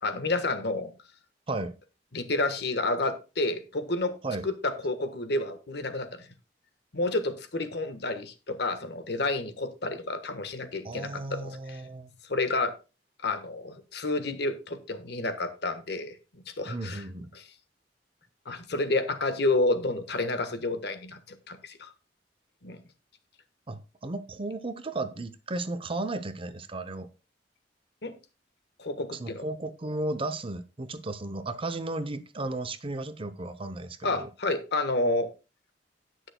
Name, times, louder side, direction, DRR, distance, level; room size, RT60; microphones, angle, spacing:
voice 1, 0.0-0.9 2.1-4.2 4.4-6.3 6.9-11.8 12.3-12.7 13.2-17.0 17.3-17.4 18.4-21.9 22.6-22.8 28.0-28.1 28.8-29.4 34.0-35.3, left 2 dB, 65° left, 1.3 m, -30 dB
voice 2, 1.5-1.8 4.2-4.5 10.8-12.1 16.6-17.3 23.7-27.1 29.1-34.3, right 2 dB, 30° right, 0.7 m, -34 dB
18.0 x 6.3 x 2.2 m
head